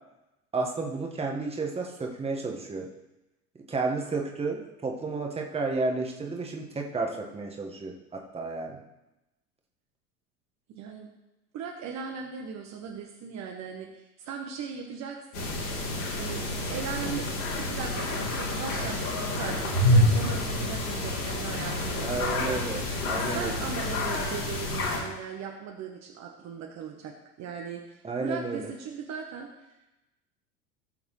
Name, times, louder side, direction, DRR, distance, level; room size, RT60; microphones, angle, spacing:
voice 1, 0.5-2.9 3.7-8.8 22.0-23.6 28.0-28.7, right 3 dB, 15° right, 1 dB, 1.6 m, -32 dB
voice 2, 10.7-11.1 11.5-15.7 16.2-16.4 16.7-17.3 17.6-22.3 23.3-29.5, right 6 dB, 35° right, 1 dB, 1.3 m, -38 dB
sound 1, 15.3-25.0, left 1 dB, 55° left, 3.3 m, -28 dB
17.0 x 7.1 x 3.2 m, 0.96 s
figure-of-eight pair, 80°, 45 cm